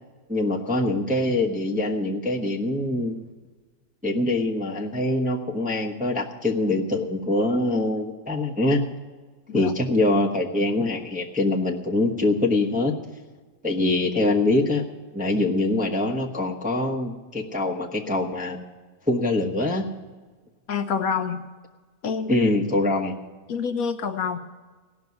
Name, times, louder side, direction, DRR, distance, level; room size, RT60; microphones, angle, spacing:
voice 1, 0.3-3.2 4.0-8.8 9.5-12.9 13.6-14.8 15.1-18.6 19.1-19.9 22.3-23.1, left 2 dB, 5° right, -1 dB, 0.8 m, -24 dB
voice 2, 20.7-21.4 22.0-22.5 23.5-24.4, left 6 dB, 65° left, 8 dB, 1.1 m, -27 dB
16.5 x 6.1 x 9.4 m, 1.4 s
omnidirectional pair, 1.8 m